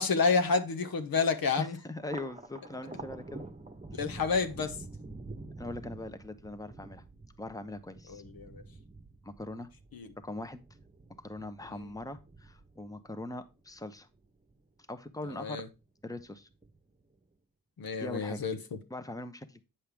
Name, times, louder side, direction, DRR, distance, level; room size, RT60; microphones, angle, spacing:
voice 1, 0.0-1.8 4.0-4.8 8.1-8.6 9.9-10.1 11.8-11.9 15.3-15.7 17.8-18.8, left 4 dB, 75° left, 1.1 m, -29 dB
voice 2, 1.6-3.4 5.6-7.0 7.4-8.2 9.2-9.7 10.2-10.6 11.2-14.1 14.9-15.6 16.0-16.5 18.0-18.4 18.9-19.6, left 2 dB, 10° left, 0.9 m, -41 dB
Thunder, 2.0-14.6 15.0-15.8 16.2-17.0, right 3 dB, 20° right, 1.0 m, -48 dB
8.8 x 5.6 x 3.4 m
cardioid pair, 65°, 36 cm